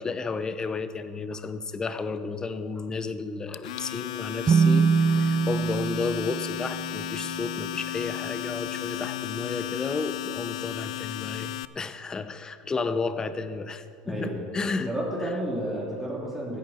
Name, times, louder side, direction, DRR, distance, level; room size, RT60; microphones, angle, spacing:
voice 1, 0.0-14.9 15.2-15.3, left 4 dB, 20° left, 12 dB, 0.8 m, -32 dB
Domestic sounds home sounds, 3.5-11.7, left 13 dB, 85° left, 0.3 m, -34 dB
sound 1, 4.5-8.0, right 5 dB, 30° right, 0.5 m, -25 dB
voice 2, 14.0-14.5 14.9-16.6, right 1 dB, 5° right, -5 dB, 3.1 m, -31 dB
15.0 x 11.0 x 4.3 m, 2.3 s
supercardioid pair, 105°, 3 cm